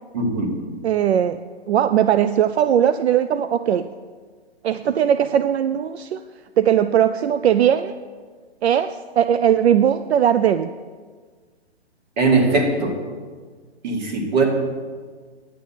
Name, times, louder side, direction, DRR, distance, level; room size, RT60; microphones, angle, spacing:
voice 1, 0.1-0.5 12.2-12.9 13.8-14.4, right 3 dB, 40° right, 0 dB, 2.3 m, -19 dB
voice 2, 0.8-1.4 1.7-3.9 4.6-6.2 6.6-7.9 8.6-10.7, right 9 dB, 75° right, 11 dB, 0.5 m, -19 dB
9.8 x 7.4 x 5.7 m, 1.5 s
hypercardioid pair, 150°, 32 cm